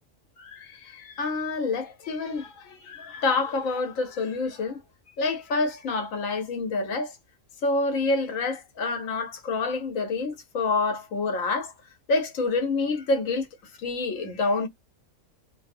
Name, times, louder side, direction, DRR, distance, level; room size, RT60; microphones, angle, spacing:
voice 1, 0.4-4.8 5.2-7.1 7.6-11.7 12.1-13.5 13.8-14.7, left 3 dB, 90° left, 1.2 m, -27 dB
2.7 x 2.0 x 2.5 m
omnidirectional pair, 1.3 m